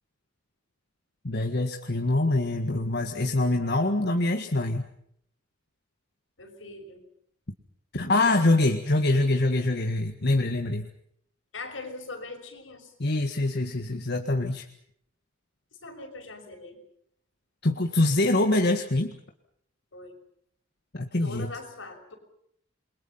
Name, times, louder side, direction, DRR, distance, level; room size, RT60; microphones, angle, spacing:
voice 1, 1.2-4.8 7.9-10.9 13.0-14.6 17.6-19.2 20.9-21.5, left 2 dB, 60° left, 4 dB, 1.8 m, -24 dB
voice 2, 6.4-7.0 11.5-12.9 15.8-16.8 19.9-20.1 21.2-22.2, left 3 dB, 85° left, 3 dB, 6.2 m, -41 dB
29.0 x 23.0 x 5.8 m, 0.70 s
head